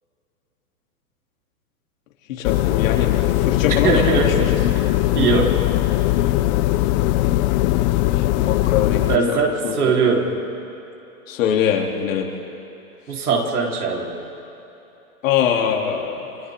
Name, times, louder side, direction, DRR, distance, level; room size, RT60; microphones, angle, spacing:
voice 1, 2.3-3.1 3.4-4.3 8.5-9.4 9.6-9.7 11.3-12.3 15.2-16.3, left 8 dB, 65° left, 0 dB, 3.1 m, -22 dB
sound 1, 2.4-9.2, left 16 dB, 30° left, 0.5 m, -19 dB
voice 2, 3.8-4.5 5.1-5.6 9.1-10.3 13.1-14.2, right 5 dB, 90° right, -1 dB, 4.1 m, -20 dB
29.0 x 26.5 x 3.7 m, 3.0 s
hypercardioid pair, 135°, 43 cm